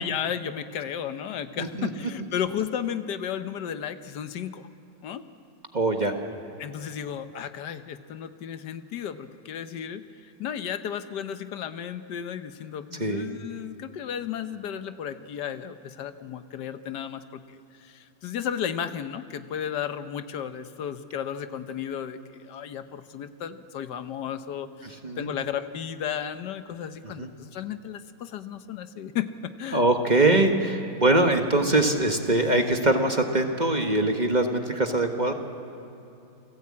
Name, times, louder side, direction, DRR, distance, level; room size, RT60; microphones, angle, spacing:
voice 1, 0.0-4.7 5.0-5.2 6.6-29.8, left 9 dB, 80° left, 10 dB, 1.5 m, -34 dB
voice 2, 1.6-1.9 5.7-6.1 13.0-13.2 25.0-25.3 27.2-27.3 29.7-35.3, right 2 dB, 30° right, 4 dB, 1.3 m, -22 dB
28.5 x 16.5 x 8.6 m, 2.8 s
omnidirectional pair, 1.8 m